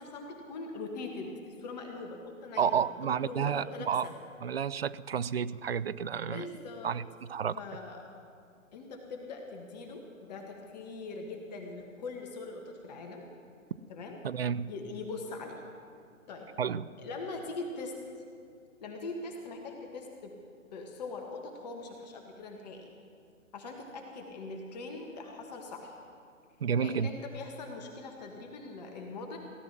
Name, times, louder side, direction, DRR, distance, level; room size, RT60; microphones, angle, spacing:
voice 1, 0.0-4.1 6.2-6.9 7.6-8.0 8.7-13.2 13.9-14.2 14.6-15.6 16.3-16.5 17.0-17.9 18.8-20.3 20.7-22.9 23.5-26.0 26.8-29.4, left 3 dB, 30° left, 2 dB, 1.5 m, -42 dB
voice 2, 2.6-4.1 4.4-6.5 6.8-7.0 7.3-7.6 14.2-14.7 16.6-16.9 26.6-27.1, right 7 dB, 50° right, 17 dB, 0.4 m, -30 dB
17.0 x 12.0 x 6.0 m, 2.4 s
figure-of-eight pair, 140°, 41 cm